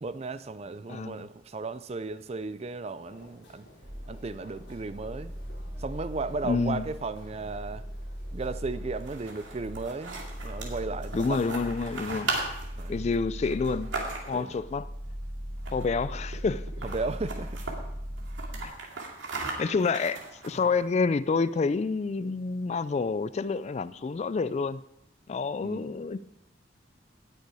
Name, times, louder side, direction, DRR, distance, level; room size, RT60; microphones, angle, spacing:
voice 1, 0.0-3.7 4.1-5.3 5.8-7.9 8.3-11.4 12.8-13.0 14.3-14.5 16.8-17.7 25.6-25.9, right 3 dB, 35° right, 0.4 m, -35 dB
voice 2, 0.9-1.3 6.4-6.8 11.1-12.3 12.9-13.9 14.3-14.9 15.7-16.6 18.6-18.7 19.6-24.8 25.3-26.2, left 4 dB, 35° left, 0.3 m, -28 dB
sound 1, 3.0-11.0, left 1 dB, 65° left, 4.8 m, -55 dB
sound 2, 3.8-18.6, equal, 55° right, 2.1 m, -39 dB
sound 3, 8.9-14.5 15.6-16.0 16.3-16.4 16.7-17.7 18.2-20.8, right 3 dB, 90° right, 2.4 m, -37 dB
18.0 x 6.7 x 4.8 m
head